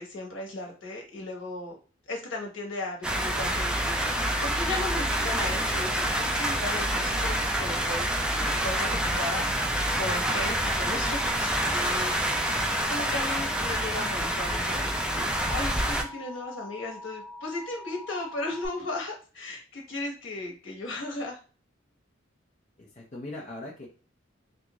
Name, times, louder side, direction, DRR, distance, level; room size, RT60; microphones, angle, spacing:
voice 1, 0.0-1.8 2.1-12.1 12.4-21.4, left 2 dB, 70° left, 0 dB, 1.2 m, -36 dB
sound 1, 3.0-16.0, right 1 dB, 5° right, 0.4 m, -27 dB
Alarm, 10.5-18.7, left 2 dB, 25° right, 0.9 m, -44 dB
voice 2, 22.8-23.9, left 2 dB, 35° left, -2 dB, 0.7 m, -40 dB
3.5 x 2.5 x 3.0 m, 0.37 s
head